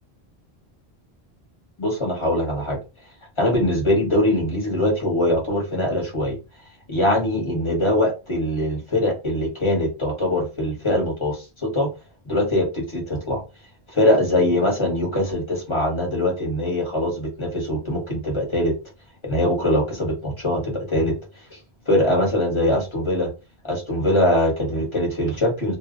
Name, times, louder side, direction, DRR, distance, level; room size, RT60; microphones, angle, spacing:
voice 1, 1.8-2.8 3.4-6.4 6.9-11.9 12.2-13.4 13.9-18.7 19.2-21.1 21.9-23.3 23.6-25.8, left 1 dB, 30° left, 0 dB, 0.9 m, -22 dB
2.1 x 2.0 x 3.6 m, 0.29 s
omnidirectional pair, 1.1 m